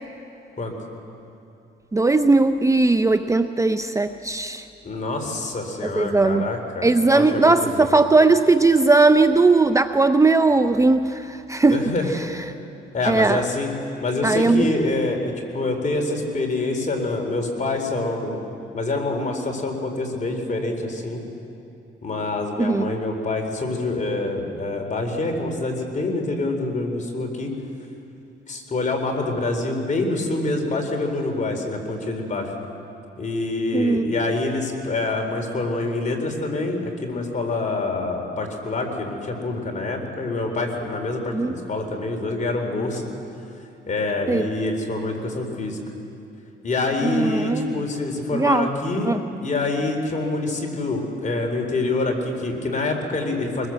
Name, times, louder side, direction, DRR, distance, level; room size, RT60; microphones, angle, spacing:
voice 1, 1.9-4.6 5.8-6.5 6.8-11.8 13.1-13.4 14.2-14.7 22.6-22.8 33.7-34.1 41.3-41.5 44.3-44.5 47.0-47.7 48.3-48.7 49.0-49.2, right 3 dB, 15° right, 9 dB, 0.6 m, -18 dB
voice 2, 4.8-6.9 7.1-7.9 11.7-12.1 12.9-13.7 14.0-18.4 18.7-21.2 22.0-27.5 28.5-32.5 33.2-43.1 43.9-45.8 46.6-49.1 49.4-53.7, left 2 dB, 40° left, 3 dB, 4.1 m, -26 dB
24.0 x 21.0 x 7.8 m, 2.8 s
cardioid pair, 90°, 20 cm